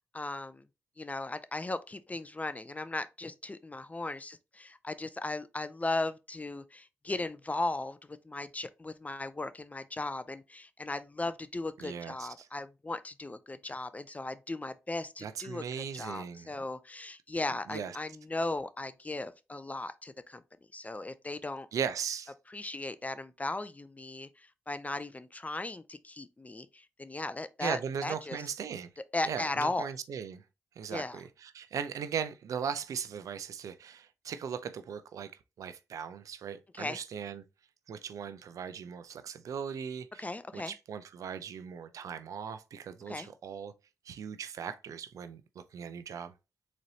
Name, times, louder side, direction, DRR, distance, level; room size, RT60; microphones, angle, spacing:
voice 1, 0.1-0.6 1.0-20.4 20.7-21.7 22.5-28.4 29.1-29.9 30.9-31.2 36.7-37.0 40.2-40.7 43.1-43.3, left 2 dB, 25° left, 0.4 m, -37 dB
voice 2, 11.8-12.5 15.2-16.5 17.7-18.0 21.7-22.3 27.6-28.9 29.2-30.4 30.8-35.3 35.6-37.4 37.9-40.3 40.5-43.7 44.1-45.4 45.7-46.3, right 7 dB, 75° right, 0.4 m, -38 dB
4.0 x 3.2 x 2.7 m
supercardioid pair, 40°, 6 cm